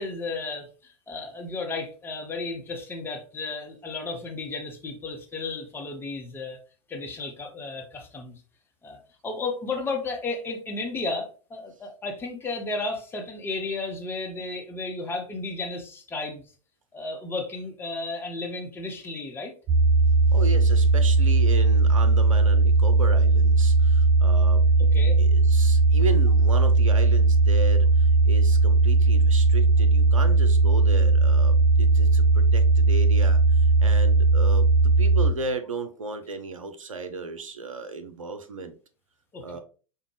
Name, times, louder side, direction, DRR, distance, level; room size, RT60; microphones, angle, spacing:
voice 1, 0.0-6.6 6.9-8.4 8.8-9.0 9.2-16.5 16.9-19.5 24.9-25.2 39.3-39.4, left 3 dB, 15° left, 0.8 m, -33 dB
sound 1, 19.7-35.3, right 3 dB, 25° right, 0.4 m, -18 dB
voice 2, 20.3-24.7 25.2-38.7 39.4-39.6, right 3 dB, 75° right, 0.5 m, -35 dB
5.0 x 2.2 x 3.1 m
figure-of-eight pair, 100°, 17 cm